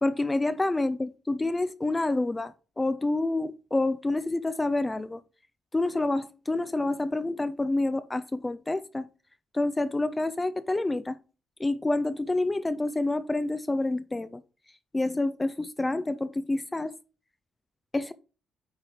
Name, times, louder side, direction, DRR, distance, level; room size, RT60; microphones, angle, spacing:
voice 1, 0.0-5.2 5.7-9.1 9.5-11.2 11.6-14.4 14.9-16.9 17.9-18.1, left 2 dB, 15° left, 0.4 m, -28 dB
9.1 x 3.1 x 4.9 m
cardioid pair, 90°, 0 cm